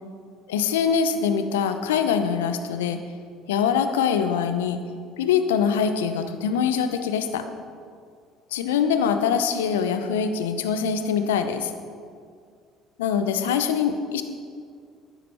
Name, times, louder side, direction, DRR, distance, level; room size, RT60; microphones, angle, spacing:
voice 1, 0.5-3.0 3.5-4.8 5.2-7.5 8.5-11.7 13.0-14.2, left 7 dB, 80° left, 9 dB, 0.7 m, -23 dB
13.5 x 10.5 x 4.4 m, 2.1 s
hypercardioid pair, 60°, 0 cm